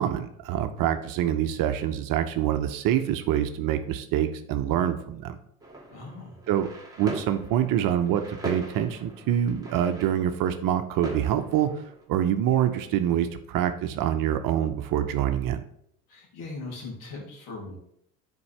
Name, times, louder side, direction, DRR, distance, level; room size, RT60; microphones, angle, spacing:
voice 1, 0.0-5.4 6.5-6.7 7.0-11.7 12.1-15.6, right 10 dB, 50° right, 8 dB, 0.8 m, -25 dB
sound 1, 5.6-12.1, right 2 dB, 10° right, 2.2 m, -40 dB
voice 2, 5.9-6.4 16.1-17.8, left 3 dB, 55° left, -1 dB, 2.7 m, -39 dB
9.6 x 4.6 x 3.3 m, 0.70 s
hypercardioid pair, 70°, 44 cm